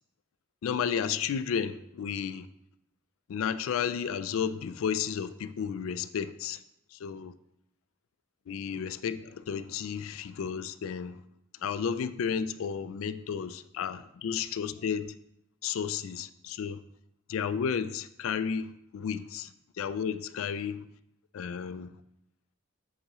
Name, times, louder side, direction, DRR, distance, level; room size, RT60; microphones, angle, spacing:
voice 1, 0.6-2.5 3.3-6.6 6.9-7.3 8.5-11.2 11.6-15.1 15.6-16.8 17.3-20.9 21.3-21.9, left 7 dB, 75° left, 0.3 m, -32 dB
8.1 x 4.8 x 3.0 m
head